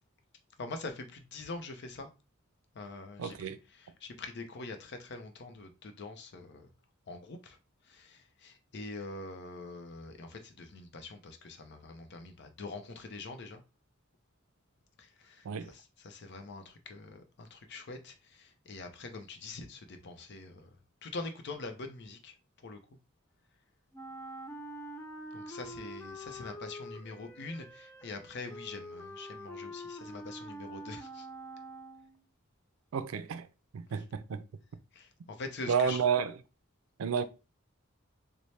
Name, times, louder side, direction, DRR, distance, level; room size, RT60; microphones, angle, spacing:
voice 1, 0.6-2.1 2.7-3.5 3.7-6.7 7.1-7.6 7.9-13.6 15.0-20.8 21.0-22.3 22.6-22.8 25.3-31.3 34.9-36.0, left 3 dB, 55° left, 0.6 m, -44 dB
voice 2, 3.2-3.6 15.4-15.7 32.9-33.5 33.7-34.4 35.7-36.4 37.0-37.2, right 6 dB, 85° right, 0.4 m, -31 dB
Wind instrument woodwind instrument, 23.9-32.2, equal, 10° left, 0.4 m, -45 dB
4.2 x 2.1 x 3.2 m
head